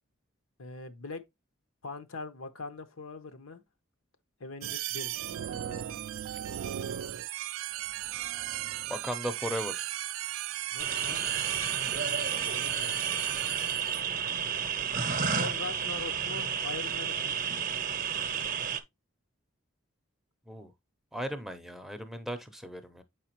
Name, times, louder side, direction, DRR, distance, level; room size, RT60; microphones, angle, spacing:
voice 1, 0.6-1.2 1.8-3.6 4.4-5.2 10.7-11.3 11.9-12.9 15.3-17.4, left 3 dB, 80° left, 0.8 m, -42 dB
sound 1, 4.6-14.0, right 13 dB, 70° right, 0.3 m, -36 dB
voice 2, 8.9-9.9 20.5-20.7 21.1-23.0, equal, ahead, 0.5 m, -36 dB
sound 2, 10.8-18.8, right 7 dB, 40° right, 0.6 m, -31 dB
7.1 x 4.9 x 2.9 m
head